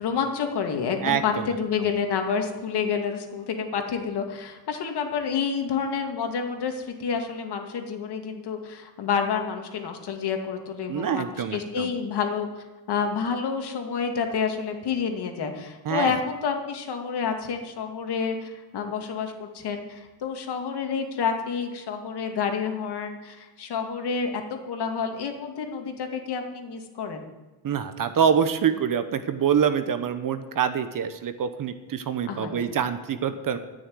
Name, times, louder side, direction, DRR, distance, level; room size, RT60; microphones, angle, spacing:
voice 1, 0.0-12.5 12.9-27.3 32.3-32.6, left 6 dB, 55° left, 4 dB, 2.4 m, -29 dB
voice 2, 1.0-1.5 10.9-11.9 15.8-16.1 27.6-33.6, right 7 dB, 40° right, 11 dB, 1.1 m, -25 dB
13.5 x 6.6 x 9.5 m, 1.2 s
cardioid pair, 105°, 48 cm